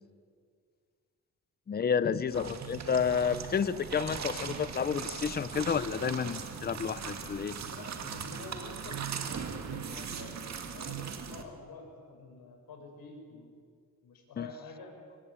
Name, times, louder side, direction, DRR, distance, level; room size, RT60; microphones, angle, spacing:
voice 1, 1.7-7.6 14.4-14.5, left 6 dB, 25° left, 15 dB, 0.7 m, -30 dB
sound 1, 2.3-11.4, right 6 dB, 50° right, 2.1 m, -40 dB
sound 2, 2.6-11.1, right 12 dB, 90° right, 1.1 m, -47 dB
voice 2, 7.6-10.4 10.6-13.6 14.0-14.9, left 3 dB, 80° left, 2 dB, 6.7 m, -48 dB
25.5 x 25.0 x 8.4 m, 2.1 s
wide cardioid pair, 160°, 35 cm